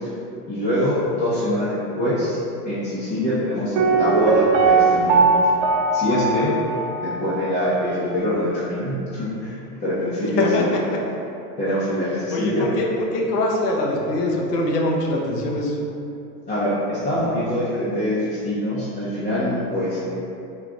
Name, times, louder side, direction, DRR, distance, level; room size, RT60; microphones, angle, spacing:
voice 1, 0.5-2.4 2.6-5.2 5.9-6.5 7.0-9.5 9.8-10.7 11.6-12.6 16.5-20.1, left 1 dB, 15° left, -11 dB, 0.6 m, -24 dB
Piano, 3.8-7.5 7.8-7.9, right 4 dB, 55° right, 0.5 m, -19 dB
voice 2, 12.3-15.8, left 1 dB, 90° left, -1 dB, 0.8 m, -23 dB
3.6 x 2.3 x 3.7 m, 2.7 s
supercardioid pair, 125°, 46 cm